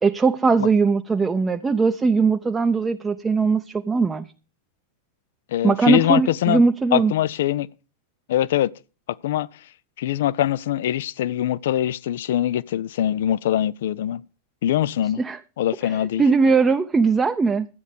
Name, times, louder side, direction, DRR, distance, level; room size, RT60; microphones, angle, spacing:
voice 1, 0.0-4.2 5.6-7.1 15.2-15.4 15.8-17.7, right 4 dB, 15° right, 0.7 m, -20 dB
voice 2, 5.5-6.6 6.9-7.7 8.3-8.7 9.2-9.5 10.0-14.2 14.6-15.2 15.6-16.2, left 12 dB, 55° left, 0.5 m, -22 dB
13.5 x 9.2 x 5.2 m
figure-of-eight pair, 90°, 0 cm